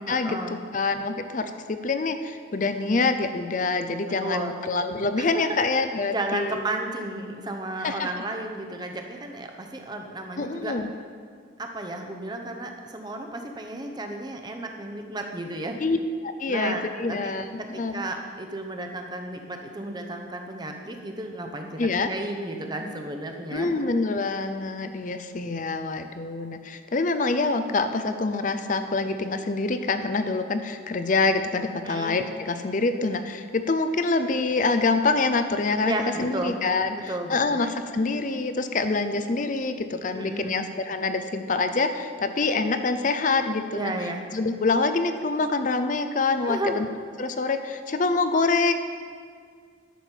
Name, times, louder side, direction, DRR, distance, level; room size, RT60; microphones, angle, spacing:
voice 1, 0.1-0.6 4.1-4.6 5.2-5.5 6.1-10.8 11.6-15.8 16.5-23.7 31.8-32.2 35.9-36.6 36.9-37.6 40.1-40.6 43.7-44.3 46.4-46.8, right 2 dB, 20° right, 3 dB, 0.8 m, -33 dB
voice 2, 0.7-6.6 7.8-8.1 10.4-10.9 15.8-16.0 16.2-17.5 17.8-18.1 21.8-22.1 23.5-35.9 36.2-37.0 37.3-43.9 44.3-46.9 47.2-48.7, left 3 dB, 40° left, 9 dB, 0.5 m, -26 dB
11.0 x 7.3 x 4.5 m, 2.1 s
head